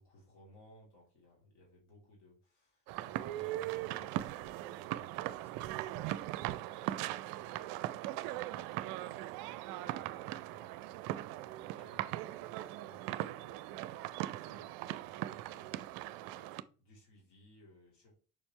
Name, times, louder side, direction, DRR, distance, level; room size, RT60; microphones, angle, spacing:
voice 1, 0.0-18.1, left 1 dB, 55° left, -2 dB, 3.4 m, -63 dB
sound 1, 2.9-16.6, right 15 dB, 50° right, 0.5 m, -39 dB
7.0 x 5.2 x 3.2 m, 0.37 s
figure-of-eight pair, 55°, 46 cm